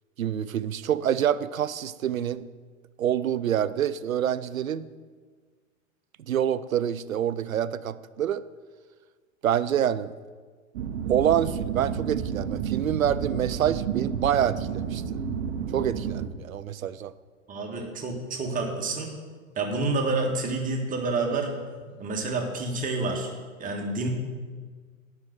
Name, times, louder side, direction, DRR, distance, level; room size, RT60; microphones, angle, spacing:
voice 1, 0.2-2.4 3.0-4.9 6.3-8.4 9.4-10.2 11.1-15.2 15.7-17.1, right 10 dB, 80° right, 16 dB, 0.6 m, -26 dB
sound 1, 10.7-16.3, right 7 dB, 50° right, 0.9 m, -31 dB
voice 2, 17.5-19.1 19.6-21.5 22.0-23.3 23.6-24.1, right 3 dB, 20° right, 1 dB, 1.6 m, -28 dB
9.8 x 5.9 x 7.5 m, 1.5 s
figure-of-eight pair, 100°, 41 cm